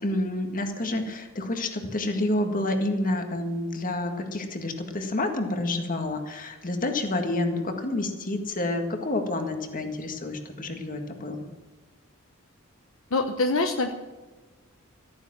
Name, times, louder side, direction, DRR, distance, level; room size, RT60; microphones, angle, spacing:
voice 1, 0.0-11.4, left 2 dB, 40° left, 5 dB, 1.8 m, -29 dB
voice 2, 13.1-13.9, left 3 dB, 65° left, 5 dB, 1.0 m, -24 dB
14.5 x 9.5 x 7.4 m, 1.3 s
head